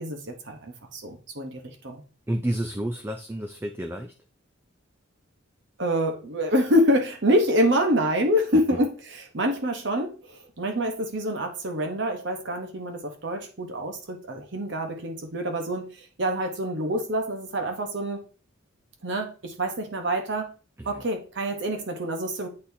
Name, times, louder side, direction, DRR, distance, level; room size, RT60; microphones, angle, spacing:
voice 1, 0.0-2.0 5.8-18.2 19.0-20.5 20.8-22.5, equal, 55° right, 4 dB, 1.0 m, -26 dB
voice 2, 2.3-4.1 8.7-8.8 20.8-21.0, right 1 dB, 10° right, 5 dB, 0.3 m, -30 dB
8.6 x 4.2 x 2.7 m, 0.36 s
head